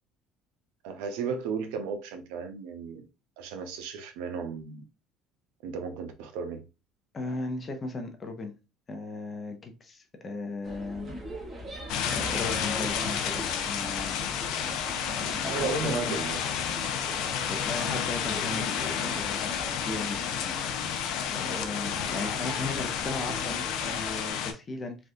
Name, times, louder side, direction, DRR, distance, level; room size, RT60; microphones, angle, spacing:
voice 1, 0.8-3.1 3.4-4.8 5.6-6.6 15.5-16.4, right 5 dB, 85° right, 0.6 m, -34 dB
voice 2, 7.1-8.5 8.9-11.2 12.1-14.2 15.2-16.2 17.5-20.2 21.3-25.0, left 2 dB, 25° left, 0.6 m, -36 dB
sound 1, 10.6-24.3, right 1 dB, 25° right, 1.0 m, -42 dB
sound 2, 11.9-24.5, left 8 dB, 75° left, 0.5 m, -31 dB
3.4 x 2.4 x 2.6 m
cardioid pair, 130°, 0 cm